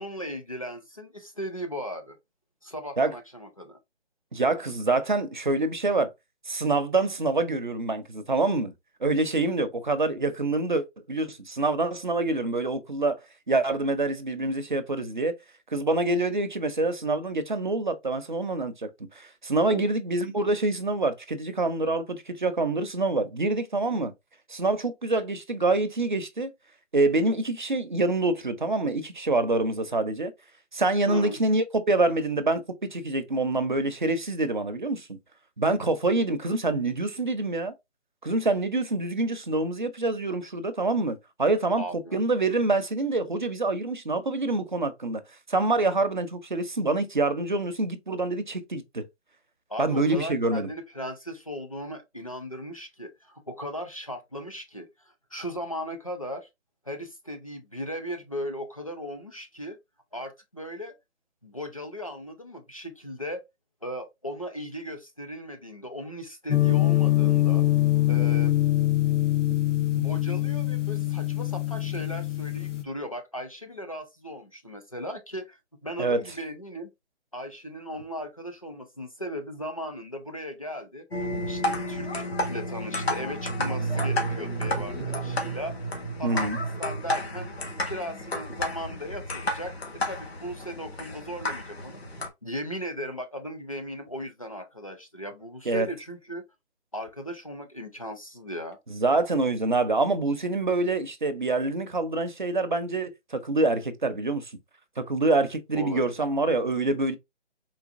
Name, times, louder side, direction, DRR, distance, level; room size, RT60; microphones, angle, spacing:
voice 1, 0.0-2.2 2.6-3.8 9.4-9.5 19.7-19.8 31.1-31.4 41.8-42.2 49.7-56.5 56.9-59.8 60.1-61.0 61.4-63.4 63.8-67.7 68.1-68.6 69.8-76.9 77.3-81.0 81.4-85.8 86.2-86.5 86.8-87.5 87.8-92.0 92.4-96.4 96.9-98.8 105.7-106.1, equal, 30° left, 0.5 m, -37 dB
voice 2, 4.3-6.1 6.5-8.7 9.0-13.2 13.5-15.3 15.7-18.9 19.2-24.1 24.5-26.5 26.9-30.3 30.7-35.2 35.6-37.7 38.2-45.2 45.5-49.0 49.8-50.7 76.0-76.2 86.2-86.6 95.7-95.9 98.9-104.5 105.0-107.2, right 2 dB, 45° right, 0.5 m, -26 dB
sound 1, 66.5-72.8, left 15 dB, 90° left, 0.9 m, -24 dB
sound 2, 81.1-92.3, equal, 60° left, 1.3 m, -31 dB
3.9 x 2.8 x 2.5 m
hypercardioid pair, 175°, 35 cm